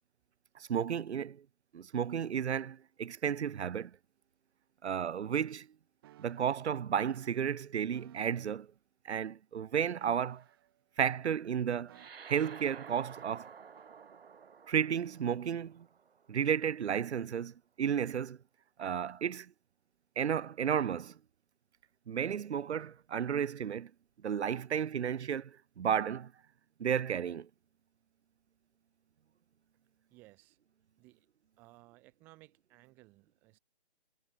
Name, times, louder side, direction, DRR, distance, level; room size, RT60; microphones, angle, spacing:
voice 1, 0.6-1.4 1.7-3.9 4.8-5.7 6.2-8.7 9.0-10.4 11.0-12.0 12.3-13.5 14.7-15.9 16.3-18.4 18.8-19.5 20.2-21.2 22.1-23.9 24.2-26.3 26.8-27.5, right 8 dB, 90° right, 0.6 m, -33 dB
sound 1, 6.0-6.7 7.9-8.6 10.0-10.9 11.9-12.6 13.8-14.0, right 14 dB, 20° right, 1.6 m, -61 dB
sound 2, 11.9-16.7, right 6 dB, 60° right, 1.6 m, -52 dB
voice 2, 30.1-30.6 31.0-31.3 31.6-33.6, right 21 dB, 5° right, 0.7 m, -59 dB
hypercardioid pair, 160°, 33 cm